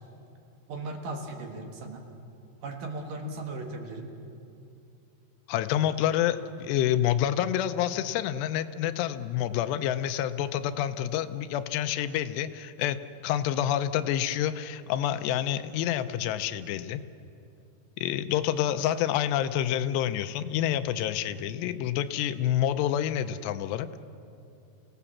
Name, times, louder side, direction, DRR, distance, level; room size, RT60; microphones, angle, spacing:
voice 1, 0.7-2.2 2.6-4.1 18.8-18.9, right 2 dB, 60° right, 3 dB, 2.9 m, -37 dB
voice 2, 5.5-17.0 18.0-23.9, left 11 dB, 85° left, 11 dB, 2.9 m, -28 dB
28.5 x 17.5 x 7.3 m, 2.6 s
omnidirectional pair, 4.8 m